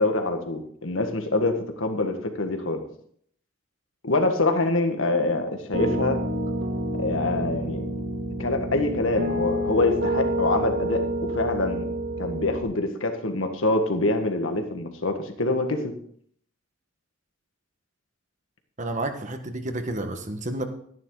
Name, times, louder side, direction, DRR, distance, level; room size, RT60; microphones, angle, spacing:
voice 1, 0.0-2.8 4.0-6.2 7.0-7.8 8.4-11.0 11.3-11.9 12.2-15.9, left 2 dB, 85° left, 5 dB, 1.6 m, -25 dB
Piano, 5.7-12.6, right 1 dB, 60° right, 1.9 m, -28 dB
voice 2, 18.8-20.6, right 2 dB, 40° right, 7 dB, 1.3 m, -30 dB
12.5 x 10.5 x 3.9 m, 0.64 s
head